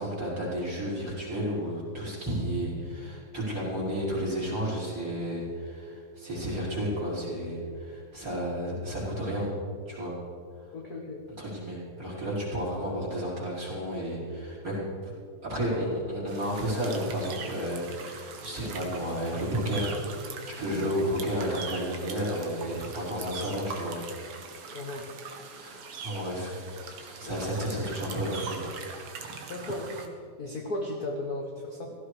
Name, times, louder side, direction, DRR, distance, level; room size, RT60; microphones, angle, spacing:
voice 1, 0.0-9.5 9.9-10.2 11.4-15.1 15.4-20.0 20.2-24.0 25.6-26.5 27.0-28.6 29.4-29.5, equal, 25° right, -6 dB, 5.2 m, -32 dB
voice 2, 10.7-11.2 20.7-20.9 24.7-25.1 27.2-27.4 29.5-30.0 30.4-31.9, left 2 dB, 45° left, 0 dB, 1.4 m, -35 dB
sound 1, 16.3-30.1, right 5 dB, 55° right, 2.1 m, -42 dB
16.5 x 15.0 x 5.0 m, 2.2 s
omnidirectional pair, 3.4 m